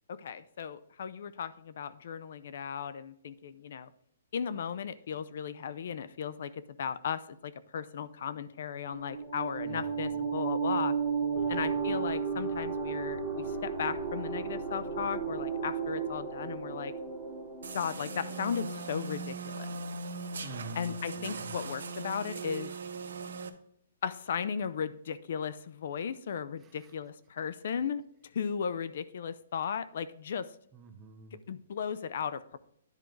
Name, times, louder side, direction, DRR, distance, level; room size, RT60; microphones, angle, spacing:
voice 1, 0.1-3.9 4.3-11.0 11.5-16.9 17.7-19.7 20.7-22.7 24.0-28.0 28.3-30.5 31.5-32.6, left 7 dB, 55° left, 14 dB, 0.5 m, -36 dB
sound 1, 8.9-19.1, right 5 dB, ahead, 1.9 m, -34 dB
voice 2, 9.7-10.2 11.4-11.6 20.3-21.6 26.8-26.9 30.7-31.4, right 5 dB, 15° right, 5 dB, 0.7 m, -48 dB
sound 2, 17.6-23.5, right 3 dB, 80° right, 0.9 m, -39 dB
10.5 x 4.5 x 3.8 m, 0.69 s
hypercardioid pair, 165°, 0 cm